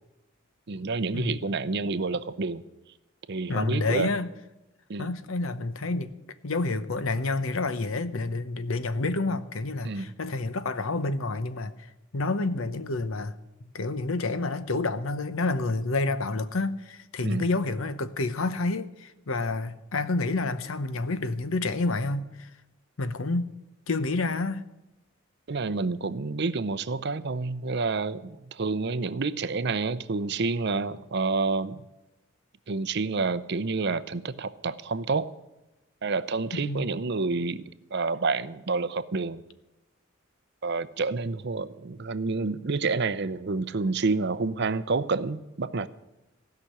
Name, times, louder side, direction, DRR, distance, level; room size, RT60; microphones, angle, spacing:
voice 1, 0.7-2.6 3.3-4.1 4.9-5.1 9.8-10.1 17.2-17.5 25.5-31.8 32.7-35.3 36.0-37.6 37.9-39.4 40.6-45.9, right 4 dB, 55° right, 15 dB, 0.6 m, -29 dB
voice 2, 3.5-4.3 5.0-6.1 6.4-11.7 12.1-13.3 13.6-22.5 23.0-23.5 23.9-24.6 36.5-36.9, left 3 dB, 80° left, 13 dB, 0.9 m, -29 dB
16.0 x 6.0 x 10.0 m, 0.99 s
head